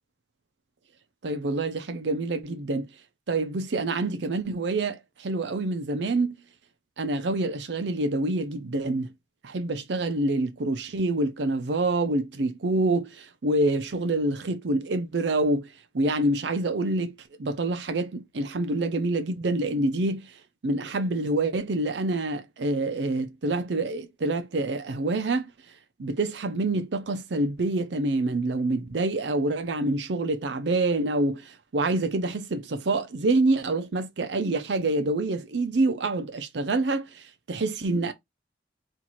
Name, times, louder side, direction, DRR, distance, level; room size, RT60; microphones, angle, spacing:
voice 1, 1.2-2.9 3.3-6.4 7.0-9.1 9.4-15.7 15.9-17.1 17.4-20.3 20.6-25.5 26.0-38.1, right 2 dB, 70° right, 0.6 m, -26 dB
3.0 x 2.6 x 4.0 m
head